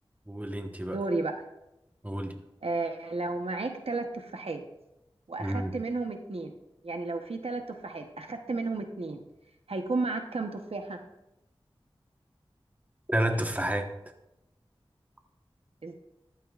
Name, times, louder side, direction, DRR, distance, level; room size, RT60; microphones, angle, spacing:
voice 1, 0.3-1.0 2.0-2.3 5.4-5.7 13.1-13.9, right 1 dB, 15° right, 5 dB, 1.2 m, -30 dB
voice 2, 0.8-1.5 2.6-4.6 5.3-6.5 6.8-9.2 9.7-11.0 15.8-15.9, right 3 dB, 85° right, 5 dB, 0.9 m, -33 dB
14.0 x 11.5 x 2.4 m, 0.90 s
wide cardioid pair, 60°, 10 cm